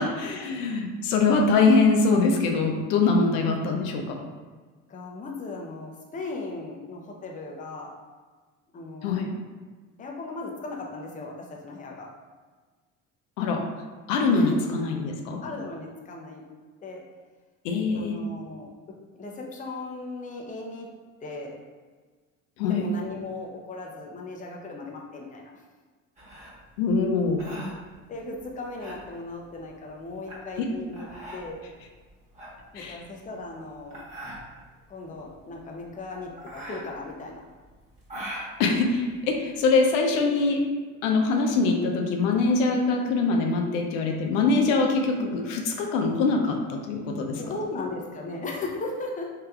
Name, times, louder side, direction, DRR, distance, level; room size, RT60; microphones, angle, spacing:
voice 1, 0.2-4.2 9.0-9.3 13.4-13.6 14.1-15.4 17.6-18.2 22.6-22.8 26.8-27.4 30.6-30.7 32.7-33.0 38.6-40.6 41.0-47.4, left 3 dB, 75° left, 2 dB, 0.6 m, -23 dB
voice 2, 4.9-7.9 8.7-9.2 10.0-12.1 14.3-14.7 15.4-16.5 16.8-17.0 17.9-20.9 21.2-21.6 22.7-25.5 28.1-31.6 32.7-34.1 34.9-37.4 47.4-49.3, left 3 dB, 20° left, 0 dB, 0.5 m, -37 dB
sound 1, 26.2-39.7, right 1 dB, 20° right, 1.3 m, -42 dB
3.2 x 2.7 x 2.3 m, 1.4 s
hypercardioid pair, 70°, 38 cm